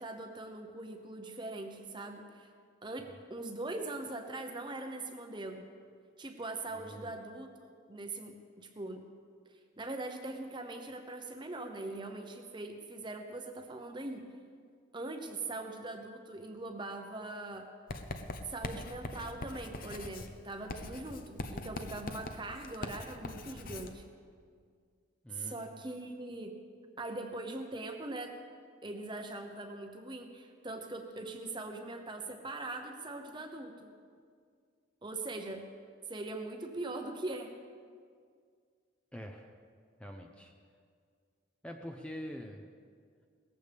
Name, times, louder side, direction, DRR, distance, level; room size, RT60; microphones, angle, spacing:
voice 1, 0.0-2.5 2.8-5.6 6.2-9.1 9.8-14.3 14.9-17.7 18.5-24.0 25.3-26.6 27.0-28.4 28.8-33.9 35.0-35.7 36.1-37.6, right 2 dB, 25° right, 5 dB, 0.8 m, -41 dB
voice 2, 6.7-7.1 25.2-25.8 39.1-39.5 40.0-40.5 41.6-42.6, equal, 5° left, 2 dB, 0.6 m, -45 dB
Writing, 17.9-24.0, left 2 dB, 45° left, 0.8 m, -42 dB
18.5 x 15.0 x 3.5 m, 2.1 s
head